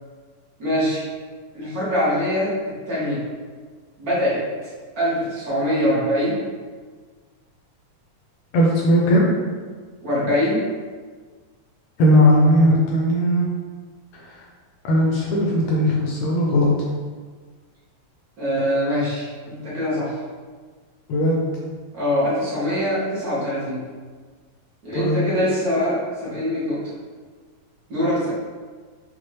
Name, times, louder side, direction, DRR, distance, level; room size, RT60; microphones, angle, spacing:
voice 1, 0.6-1.0 1.5-3.2 4.0-4.4 5.0-6.4 10.0-10.7 18.4-20.2 21.9-23.8 24.8-26.8 27.9-28.3, equal, 60° right, -9 dB, 0.9 m, -23 dB
voice 2, 8.5-9.2 12.0-13.4 14.8-16.7 21.1-21.4 25.0-25.2, equal, 75° left, -3 dB, 1.7 m, -17 dB
6.0 x 2.3 x 3.0 m, 1.5 s
omnidirectional pair, 3.5 m